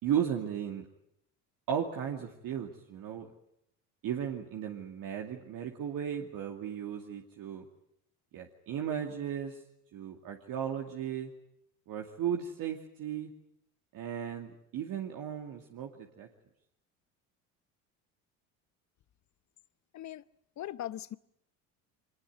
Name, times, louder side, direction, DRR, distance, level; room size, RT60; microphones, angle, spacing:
voice 1, 0.0-0.8 1.7-3.3 4.0-7.6 8.3-9.6 9.9-11.3 11.9-13.3 13.9-16.3, right 9 dB, 55° right, 2.5 m, -35 dB
voice 2, 20.6-21.2, left 12 dB, 45° left, 1.0 m, -39 dB
23.5 x 20.5 x 9.3 m
hypercardioid pair, 75°, 39 cm